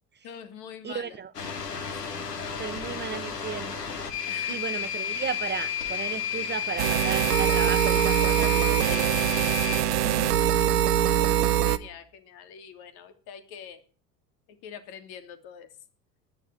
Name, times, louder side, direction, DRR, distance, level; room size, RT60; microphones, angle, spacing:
voice 1, 0.2-1.2 1.8-2.8 4.3-4.6 8.9-9.1 9.8-10.7 11.0-13.8 14.5-15.7, left 8 dB, 50° left, 3.0 m, -45 dB
voice 2, 0.8-1.3 2.6-3.8 4.5-9.2 9.4-9.5, right 7 dB, 25° right, 0.8 m, -34 dB
sound 1, 1.3-9.8, left 8 dB, 80° left, 3.0 m, -32 dB
sound 2, 6.8-11.8, right 11 dB, 75° right, 1.0 m, -23 dB
19.5 x 6.8 x 9.7 m
figure-of-eight pair, 70°, 47 cm